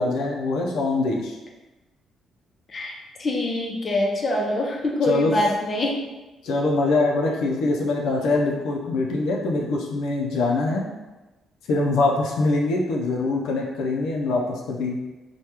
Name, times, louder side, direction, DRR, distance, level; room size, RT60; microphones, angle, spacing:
voice 1, 0.0-1.4 5.0-5.3 6.4-10.8 11.7-15.0, left 2 dB, 85° left, -1 dB, 0.4 m, -23 dB
voice 2, 3.2-6.0, left 1 dB, 40° left, 0 dB, 0.6 m, -24 dB
3.3 x 2.2 x 2.9 m, 1.1 s
cardioid pair, 90°, 0 cm